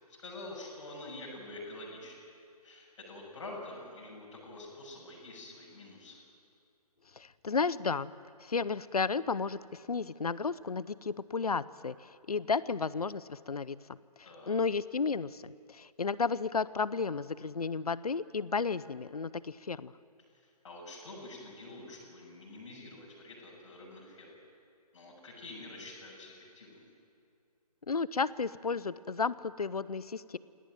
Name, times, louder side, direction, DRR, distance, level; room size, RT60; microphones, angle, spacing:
voice 1, 0.1-2.1 2.6-6.2 14.2-14.5 20.3-24.3 24.9-26.9, left 2 dB, 45° left, -5 dB, 6.8 m, -47 dB
voice 2, 7.1-8.1 8.4-13.8 14.5-19.9 27.9-30.4, left 5 dB, 70° left, 18 dB, 0.8 m, -33 dB
27.0 x 18.0 x 9.2 m, 2.4 s
figure-of-eight pair, 140°, 20 cm